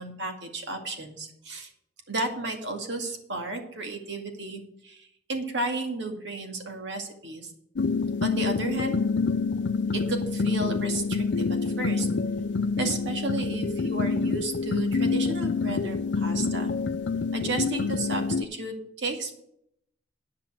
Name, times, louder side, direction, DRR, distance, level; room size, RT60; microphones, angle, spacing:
voice 1, 0.0-1.7 2.1-7.5 8.2-9.0 9.9-12.1 12.8-16.7 17.3-19.4, right 2 dB, 80° right, 4 dB, 2.2 m, -33 dB
sound 1, 7.8-18.4, left 4 dB, 80° left, 0.5 m, -27 dB
10.5 x 5.8 x 7.4 m, 0.74 s
head